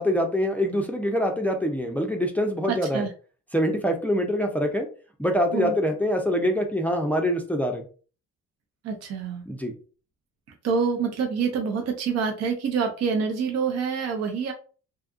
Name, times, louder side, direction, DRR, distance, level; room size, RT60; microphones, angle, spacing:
voice 1, 0.0-3.0 3.5-4.9 5.2-7.8 9.5-9.7, equal, 5° left, 3 dB, 0.4 m, -24 dB
voice 2, 2.7-3.1 5.5-5.7 8.8-9.4 10.6-14.5, right 5 dB, 60° right, 3 dB, 0.6 m, -26 dB
2.7 x 2.3 x 2.4 m, 0.38 s
cardioid pair, 90°, 30 cm